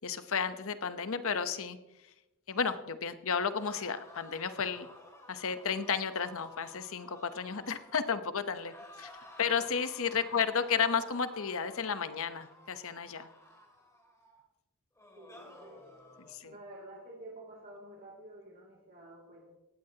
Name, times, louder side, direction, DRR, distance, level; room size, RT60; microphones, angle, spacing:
voice 1, 0.0-1.8 2.5-4.9 5.3-9.1 9.4-13.3 16.2-16.5, left 6 dB, 65° left, 11 dB, 0.9 m, -33 dB
sound 1, 3.6-8.2 8.6-14.4 15.0-16.4, left 1 dB, 15° left, 2.7 m, -54 dB
voice 2, 15.2-15.9 16.4-19.5, right 1 dB, 40° right, -3 dB, 2.6 m, -50 dB
18.5 x 15.5 x 2.9 m, 0.99 s
head